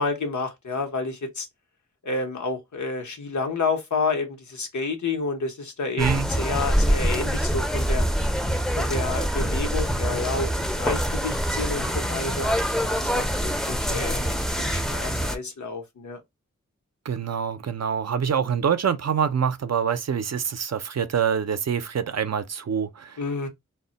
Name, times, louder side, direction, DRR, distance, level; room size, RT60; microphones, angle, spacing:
voice 1, 0.0-1.5 2.0-8.1 8.8-12.5 13.0-16.2 23.2-23.5, left 3 dB, 75° left, 0.8 m, -30 dB
sound 1, 6.0-15.4, equal, ahead, 0.5 m, -25 dB
voice 2, 6.0-6.3 17.0-23.2, right 7 dB, 60° right, 0.5 m, -25 dB
2.1 x 2.1 x 3.8 m
wide cardioid pair, 45°, 30 cm